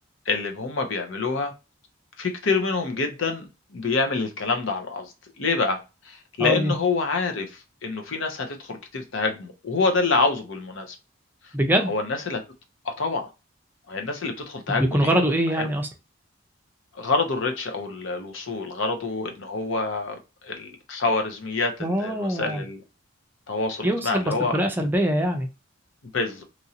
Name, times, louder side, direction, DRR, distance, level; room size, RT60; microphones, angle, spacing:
voice 1, 0.3-1.5 2.2-3.5 3.7-11.0 11.4-11.5 11.8-12.4 12.8-13.3 13.9-15.2 15.5-15.7 16.9-20.2 20.4-22.8 23.5-24.6 26.1-26.4, left 3 dB, 65° left, 0.7 m, -27 dB
voice 2, 6.4-6.7 11.5-11.9 14.7-15.9 21.8-22.6 23.8-25.5, equal, 10° right, 0.5 m, -23 dB
3.0 x 2.6 x 2.7 m
head